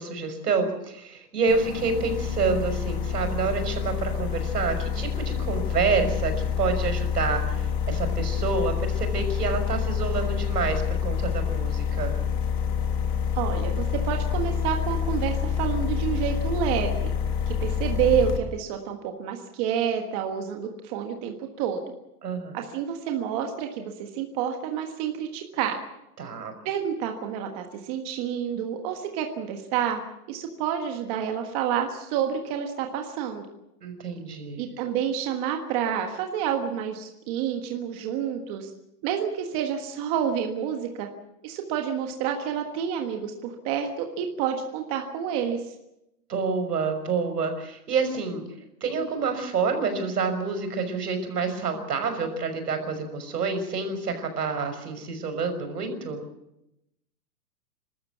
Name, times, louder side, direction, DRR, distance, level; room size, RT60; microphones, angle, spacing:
voice 1, 0.0-12.1 22.2-22.6 26.2-26.5 33.8-34.6 46.3-48.4 48.8-56.2, right 4 dB, 80° right, 7 dB, 6.1 m, -28 dB
sound 1, 1.5-18.4, left 7 dB, 20° left, 1.3 m, -27 dB
voice 2, 13.3-17.1 17.5-21.8 22.5-25.8 26.6-30.0 30.3-33.5 34.6-38.7 39.0-41.1 41.4-45.7, right 8 dB, 25° right, 4 dB, 1.5 m, -29 dB
30.0 x 13.0 x 8.2 m, 0.86 s
hypercardioid pair, 165°, 46 cm